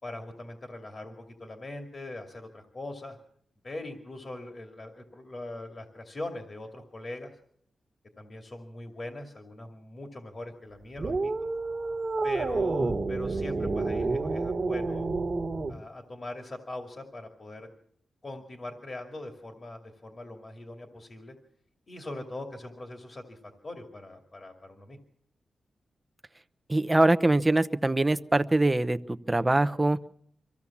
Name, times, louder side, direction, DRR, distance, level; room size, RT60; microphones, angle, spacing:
voice 1, 0.0-3.2 3.6-7.4 8.2-11.3 12.2-15.1 15.7-17.7 18.2-21.3 21.9-25.0, left 2 dB, 35° left, 3 dB, 2.4 m, -41 dB
sound 1, 11.0-15.8, right 3 dB, 40° right, 1.5 m, -29 dB
voice 2, 26.7-30.0, right 2 dB, 15° right, 12 dB, 0.8 m, -23 dB
25.0 x 15.5 x 7.2 m, 0.67 s
wide cardioid pair, 125°, 0 cm